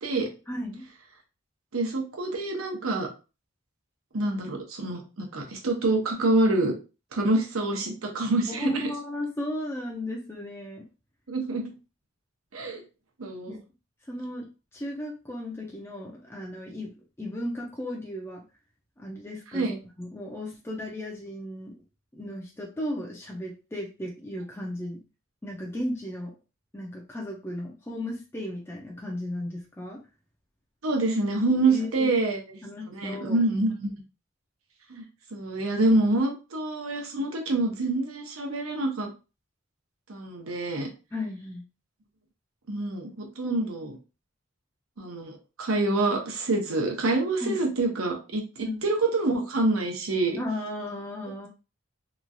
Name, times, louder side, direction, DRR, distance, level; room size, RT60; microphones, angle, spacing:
voice 1, 0.5-0.9 8.5-10.9 13.5-13.6 14.1-16.9 17.2-18.4 19.0-21.8 22.1-25.0 25.4-26.3 26.7-30.0 31.7-32.2 32.6-33.4 41.1-41.6 47.4-47.7 48.6-48.8 50.4-51.5, left 1 dB, 10° left, -1 dB, 0.4 m, -35 dB
voice 2, 1.7-3.1 4.1-6.7 7.1-8.9 11.3-11.7 12.5-12.8 13.2-13.6 19.5-19.7 30.8-32.4 32.9-33.9 34.9-35.0 35.3-39.1 40.1-40.9 42.7-43.9 45.0-50.4, right 2 dB, 85° right, 2 dB, 0.8 m, -26 dB
3.0 x 2.3 x 2.6 m, 0.31 s
head